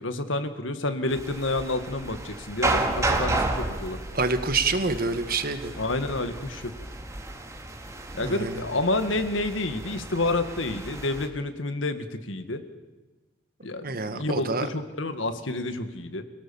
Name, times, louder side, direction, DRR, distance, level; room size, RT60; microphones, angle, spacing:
voice 1, 0.0-4.0 5.8-6.7 8.1-12.6 13.6-16.2, left 2 dB, 75° left, 9 dB, 1.8 m, -29 dB
sound 1, 1.1-11.3, right 2 dB, 15° right, 2.1 m, -32 dB
voice 2, 4.1-5.7 8.2-8.6 13.8-14.7, right 3 dB, 50° right, 10 dB, 1.6 m, -27 dB
27.0 x 17.5 x 7.2 m, 1.2 s
head